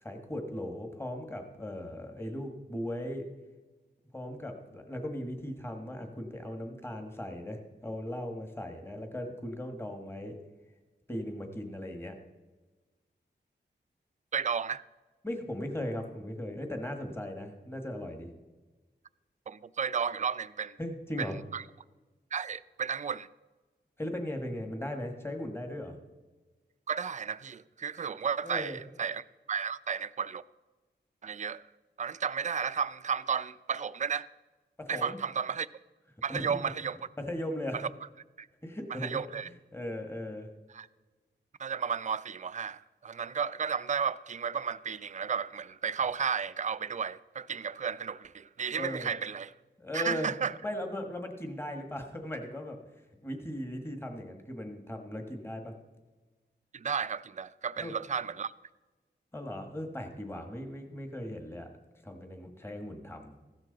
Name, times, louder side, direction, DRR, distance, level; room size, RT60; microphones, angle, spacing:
voice 1, 0.0-3.3 4.1-10.4 11.1-12.2 15.2-18.3 20.8-21.4 24.0-26.0 28.4-28.8 34.8-35.2 36.3-36.6 37.2-37.8 38.6-39.2 39.7-40.5 48.8-49.1 49.8-50.3 50.6-52.8 53.2-55.7 57.8-57.9 59.3-61.7 62.0-63.3, left 1 dB, 15° left, 1.4 m, -38 dB
voice 2, 14.3-14.8 19.5-20.8 21.2-21.6 22.3-23.3 26.9-30.4 31.2-31.6 32.0-34.3 34.9-35.7 36.2-37.0 37.7-37.9 38.4-38.5 38.9-39.5 40.7-40.9 41.6-49.5 49.9-50.6 56.7-58.5, right 6 dB, 40° right, 0.4 m, -33 dB
15.5 x 12.0 x 3.9 m
wide cardioid pair, 140°, 19 cm